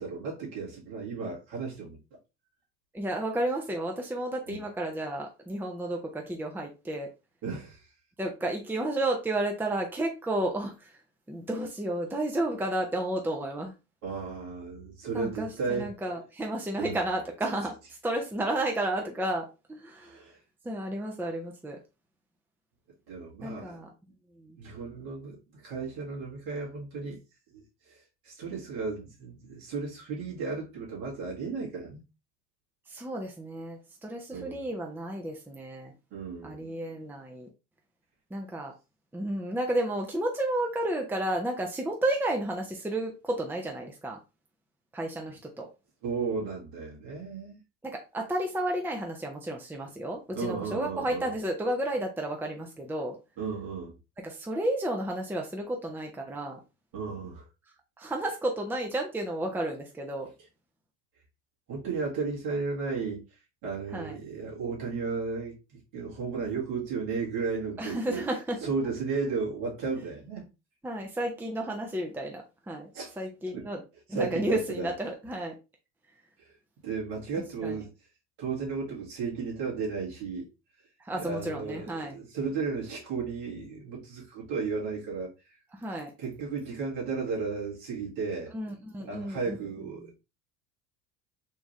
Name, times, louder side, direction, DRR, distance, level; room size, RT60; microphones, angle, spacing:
voice 1, 0.0-2.0 4.5-4.6 7.4-7.9 14.0-15.9 16.7-17.0 20.0-20.4 23.1-23.8 24.6-27.2 27.5-32.0 34.3-34.6 36.1-36.6 46.0-47.6 50.3-51.3 53.4-54.0 56.9-57.5 61.7-63.2 63.6-68.2 68.6-70.5 72.9-73.1 73.5-73.7 74.1-74.9 76.4-76.6 76.8-77.9 78.4-80.5 81.1-85.6 86.2-88.5 89.0-90.2, right 4 dB, 70° right, 1.9 m, -34 dB
voice 2, 2.9-7.1 8.2-11.0 11.3-13.7 15.1-20.2 20.6-21.8 23.4-23.9 24.4-24.6 32.9-35.9 36.4-37.5 38.3-38.7 39.1-44.2 44.9-45.7 47.8-53.2 54.2-56.6 58.0-60.3 63.9-64.2 67.8-68.6 70.8-72.9 73.2-73.8 74.1-75.5 77.6-77.8 81.0-82.2 85.7-86.1 88.5-89.6, right 1 dB, 5° right, 0.7 m, -32 dB
3.7 x 2.5 x 3.1 m
hypercardioid pair, 75°, 36 cm